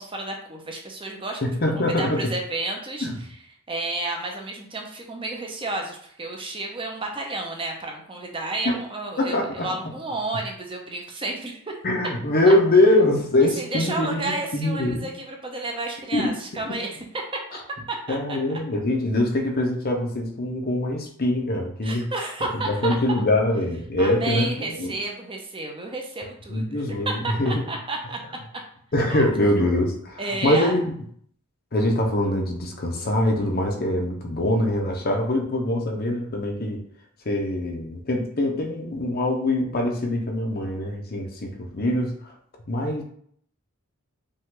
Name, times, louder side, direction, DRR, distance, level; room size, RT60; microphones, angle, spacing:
voice 1, 0.0-3.1 3.7-11.6 12.5-12.6 13.6-16.9 17.9-18.4 21.8-23.0 24.0-28.2 29.1-29.3 30.2-30.8, right 2 dB, 25° right, 1 dB, 0.7 m, -31 dB
voice 2, 1.4-2.3 3.0-3.1 8.6-8.8 9.2-9.7 11.8-15.1 16.1-16.3 16.6-16.7 18.1-22.1 22.6-25.0 26.5-27.1 27.4-27.6 28.9-30.9 31.7-36.8 37.3-42.3 42.7-43.0, left 1 dB, 45° left, 2 dB, 0.8 m, -23 dB
5.3 x 2.4 x 3.7 m, 0.62 s
head